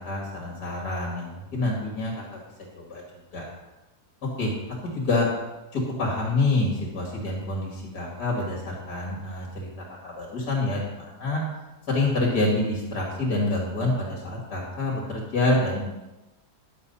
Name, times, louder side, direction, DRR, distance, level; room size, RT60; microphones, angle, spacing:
voice 1, 0.0-2.1 2.8-3.0 3.3-3.5 4.4-4.5 4.9-5.3 5.7-11.4 11.9-15.9, left 2 dB, 70° left, -2 dB, 2.9 m, -27 dB
11.0 x 7.6 x 5.6 m, 1.0 s
omnidirectional pair, 1.8 m